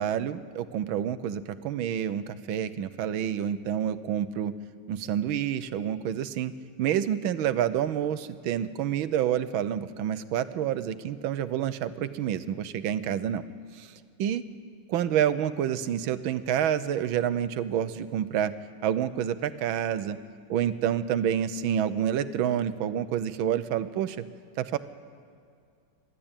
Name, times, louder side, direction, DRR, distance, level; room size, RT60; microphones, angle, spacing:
voice 1, 0.0-4.5 4.9-6.5 6.8-13.4 13.8-13.9 14.2-14.4 14.9-18.5 18.8-20.2 20.5-24.2 24.6-24.8, right 10 dB, 80° right, 13 dB, 1.6 m, -28 dB
25.0 x 12.5 x 8.9 m, 2.3 s
omnidirectional pair, 2.2 m